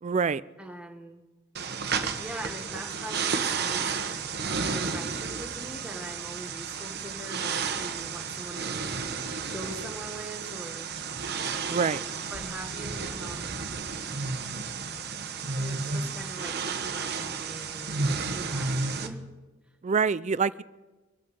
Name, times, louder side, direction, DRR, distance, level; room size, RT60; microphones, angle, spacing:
voice 1, 0.0-0.4 11.7-12.0 19.8-20.6, right 5 dB, 35° right, 18 dB, 0.4 m, -25 dB
voice 2, 0.6-1.2 2.2-3.9 4.5-8.7 9.5-10.9 12.3-13.7 15.6-19.2, right 1 dB, 5° right, 2 dB, 1.7 m, -42 dB
sound 1, 1.5-19.1, right 5 dB, 55° right, 1.1 m, -32 dB
24.5 x 8.4 x 5.4 m, 1.2 s
head